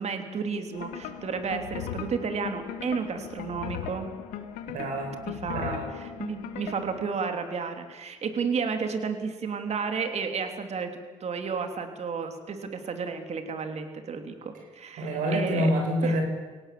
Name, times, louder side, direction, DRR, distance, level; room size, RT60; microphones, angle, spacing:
voice 1, 0.0-4.1 5.3-15.7 16.0-16.2, right 5 dB, 55° right, 6 dB, 3.2 m, -32 dB
sound 1, 0.7-7.0, left 9 dB, 85° left, 1.7 m, -38 dB
voice 2, 4.7-5.1 5.5-5.9 15.0-16.2, equal, 75° right, 3 dB, 6.1 m, -26 dB
24.5 x 17.5 x 7.8 m, 1.3 s
supercardioid pair, 60°, 14 cm